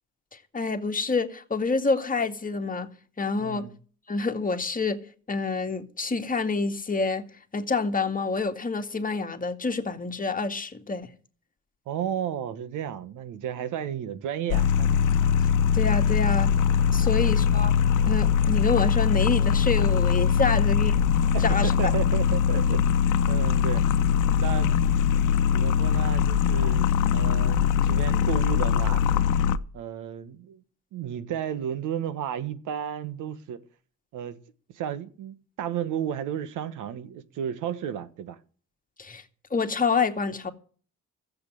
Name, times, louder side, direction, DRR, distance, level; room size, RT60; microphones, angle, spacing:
voice 1, 0.5-2.9 3.2-3.6 4.1-5.0 5.3-7.3 7.5-11.1 15.7-16.5 16.9-17.7 18.1-20.9 21.4-21.7 39.0-39.2 39.5-40.5, left 4 dB, 25° left, 2.1 m, -27 dB
voice 2, 3.4-3.7 11.9-14.9 17.0-17.4 21.3-22.9 23.3-23.8 24.4-24.7 25.5-29.0 29.7-30.6 30.9-33.6 34.1-34.4 34.7-38.4, right 9 dB, 90° right, 1.4 m, -33 dB
sound 1, 14.5-29.6, left 8 dB, 85° left, 0.9 m, -22 dB
14.0 x 7.9 x 7.8 m
cardioid pair, 90°, 30 cm